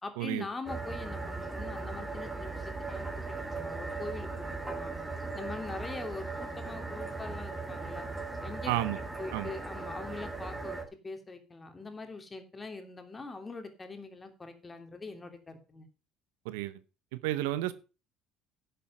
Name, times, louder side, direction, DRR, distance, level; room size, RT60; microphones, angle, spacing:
voice 1, 0.0-3.1 3.5-5.0 5.3-8.1 8.4-10.8 11.0-15.9, left 3 dB, 25° left, 6 dB, 3.0 m, -43 dB
sound 1, 0.7-10.8, right 3 dB, 15° right, 3.6 m, -38 dB
voice 2, 8.7-9.0 9.3-9.5 16.4-16.8 17.1-17.7, right 15 dB, 80° right, 15 dB, 0.8 m, -31 dB
11.0 x 6.8 x 5.7 m, 0.32 s
hypercardioid pair, 65°, 0 cm